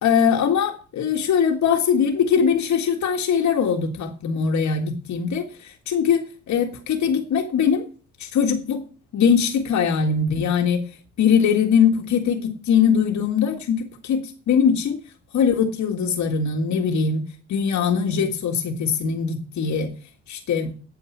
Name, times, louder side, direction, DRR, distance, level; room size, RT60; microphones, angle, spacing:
voice 1, 0.0-7.9 8.2-8.8 9.1-10.8 11.2-15.0 15.3-17.2 17.5-19.9 20.3-20.7, left 7 dB, 70° left, 1.8 m, -21 dB
9.1 x 7.1 x 8.6 m
cardioid pair, 90°, 30 cm